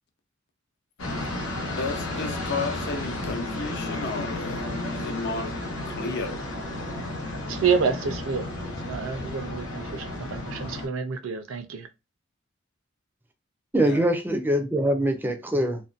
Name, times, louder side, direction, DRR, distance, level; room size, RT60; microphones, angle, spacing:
sound 1, 1.0-10.9, left 2 dB, 85° left, 0.9 m, -33 dB
voice 1, 1.6-5.5 5.9-6.4 13.8-14.0, left 3 dB, 60° left, 0.5 m, -33 dB
voice 2, 7.5-8.5 8.9-11.9, right 5 dB, 85° right, 0.5 m, -28 dB
voice 3, 13.7-15.8, right 1 dB, 10° right, 0.4 m, -23 dB
2.6 x 2.1 x 2.4 m
head